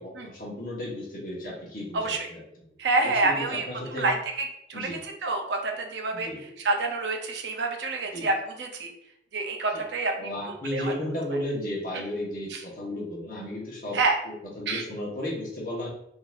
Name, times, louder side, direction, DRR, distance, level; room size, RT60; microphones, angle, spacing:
voice 1, 0.0-2.4 2.9-4.1 4.7-5.0 6.1-6.4 8.1-8.3 10.2-14.0 14.2-15.9, left 1 dB, 50° left, -4 dB, 1.2 m, -34 dB
voice 2, 2.8-6.3 6.6-8.9 9.3-10.9 12.5-12.6 13.9-14.2 14.7-14.8, right 3 dB, 85° right, 4 dB, 0.6 m, -28 dB
3.9 x 2.8 x 2.4 m, 0.76 s
head